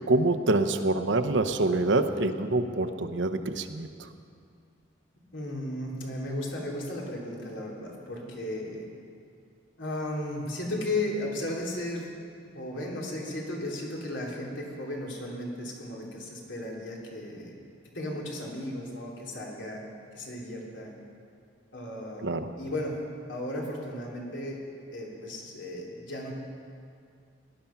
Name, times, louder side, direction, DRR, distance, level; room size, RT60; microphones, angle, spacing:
voice 1, 0.1-4.1 22.2-22.5, right 2 dB, 75° right, 9 dB, 0.9 m, -26 dB
voice 2, 5.3-8.9 9.8-12.1 12.5-17.5 17.9-19.8 20.1-20.9 21.7-22.3 22.6-23.0 23.3-24.6 24.9-26.3, left 1 dB, 75° left, -2 dB, 3.3 m, -35 dB
18.0 x 12.0 x 5.8 m, 2.3 s
head